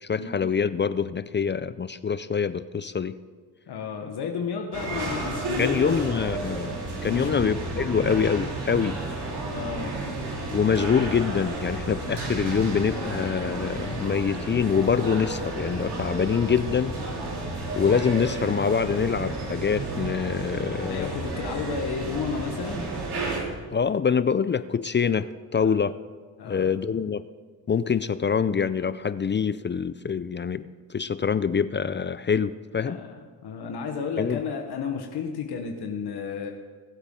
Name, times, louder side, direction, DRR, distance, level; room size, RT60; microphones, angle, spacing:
voice 1, 0.0-3.2 5.6-6.7 7.0-9.0 10.5-17.0 17.7-21.1 23.7-26.0 26.5-27.2 27.7-33.0 34.2-34.4, left 6 dB, 30° left, 15 dB, 0.4 m, -25 dB
voice 2, 3.7-6.2 7.1-7.4 9.5-9.9 20.9-22.8 25.6-25.7 26.4-26.7 32.8-33.2 33.4-36.5, left 6 dB, 70° left, 3 dB, 1.2 m, -32 dB
sound 1, 4.7-23.4, right 2 dB, 75° right, 2.8 m, -32 dB
21.0 x 8.0 x 3.8 m, 1.5 s
supercardioid pair, 55°, 40 cm